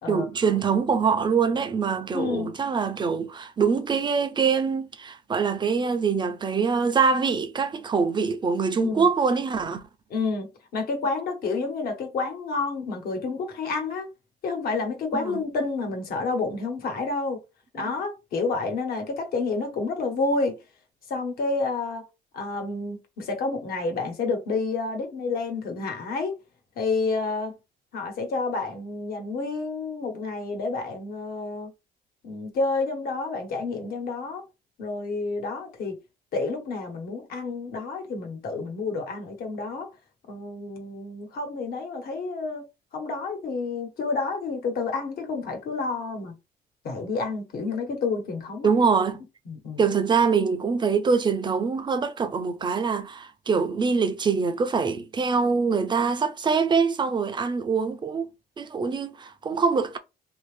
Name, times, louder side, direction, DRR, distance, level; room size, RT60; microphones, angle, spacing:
voice 1, 0.1-9.8 15.1-15.4 17.8-17.9 48.6-49.2 49.8-58.3 58.6-60.0, right 5 dB, 25° right, 0.6 m, -24 dB
voice 2, 2.1-2.5 8.8-9.1 10.1-14.1 14.4-17.4 17.7-20.6 21.1-22.0 22.3-26.3 26.8-27.5 27.9-31.7 32.2-34.4 34.8-36.0 36.3-39.9 40.3-42.6 42.9-46.3 46.8-48.7 49.5-49.8, left 3 dB, 65° left, 1.3 m, -29 dB
2.9 x 2.7 x 3.3 m
cardioid pair, 110°, 17 cm